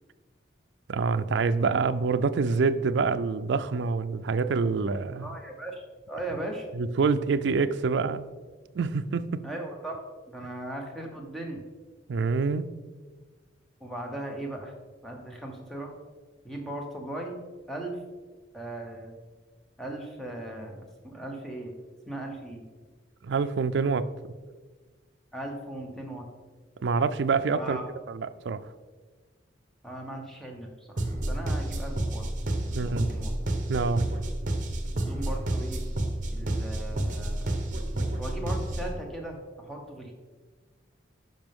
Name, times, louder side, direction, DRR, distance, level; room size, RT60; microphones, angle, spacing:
voice 1, 0.9-5.3 6.7-8.3 8.8-9.4 12.1-12.7 23.2-24.1 26.8-27.8 28.1-28.6 32.7-33.1 33.7-34.0, right 4 dB, 70° right, 10 dB, 0.4 m, -26 dB
voice 2, 5.1-6.7 9.4-10.0 10.3-11.6 13.8-14.7 15.0-15.9 16.4-17.4 17.7-18.0 18.5-19.2 19.8-21.7 22.1-22.6 25.3-26.2 27.6-27.8 29.8-32.2 32.6-33.3 35.0-35.8 36.3-37.6 38.2-40.1, right 1 dB, ahead, 0 dB, 1.0 m, -38 dB
sound 1, 31.0-39.0, right 1 dB, 40° right, 0.9 m, -30 dB
11.0 x 5.3 x 3.6 m, 1.4 s
head